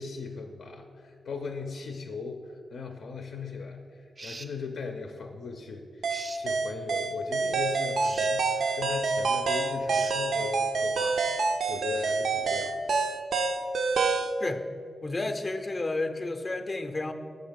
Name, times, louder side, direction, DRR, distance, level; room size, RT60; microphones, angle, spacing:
voice 1, 0.0-12.9, left 4 dB, 80° left, 3 dB, 0.5 m, -39 dB
sound 1, 4.2-4.5 6.1-6.4 8.0-8.3 9.9-10.2, right 2 dB, 30° right, 0.4 m, -42 dB
sound 2, 6.0-14.3, right 4 dB, 85° right, 0.5 m, -27 dB
voice 2, 15.0-17.1, left 2 dB, 30° left, 7 dB, 0.5 m, -31 dB
6.4 x 6.4 x 5.1 m, 2.2 s
wide cardioid pair, 120°, 0 cm